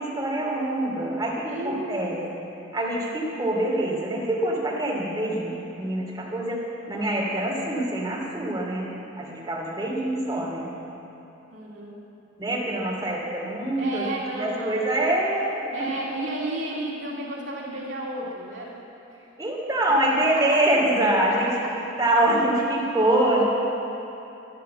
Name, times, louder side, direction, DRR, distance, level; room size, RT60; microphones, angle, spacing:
voice 1, 0.0-2.2 2.7-6.6 6.9-8.9 9.2-10.7 12.4-14.1 14.4-15.9 19.4-21.5 22.0-23.4, right 1 dB, 15° right, -5 dB, 2.7 m, -25 dB
voice 2, 1.4-2.4 11.5-12.0 13.8-15.0 15.7-18.8 20.0-20.3 21.6-21.7, right 1 dB, 60° right, -4 dB, 2.3 m, -33 dB
13.0 x 12.0 x 7.8 m, 3.0 s
head